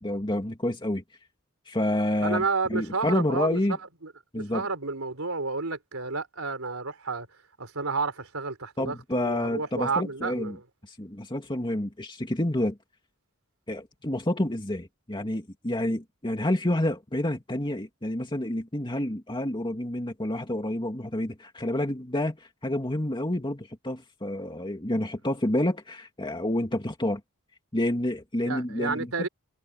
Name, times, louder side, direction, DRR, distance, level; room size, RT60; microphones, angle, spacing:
voice 1, 0.0-1.0 1.7-2.4 2.7-3.8 4.3-4.6 8.8-10.6 10.8-12.8 13.7-27.2 27.7-29.3, left 1 dB, 20° left, 2.5 m, -29 dB
voice 2, 2.2-3.6 4.0-7.3 7.6-10.6 28.4-29.3, right 4 dB, 70° right, 4.4 m, -31 dB
head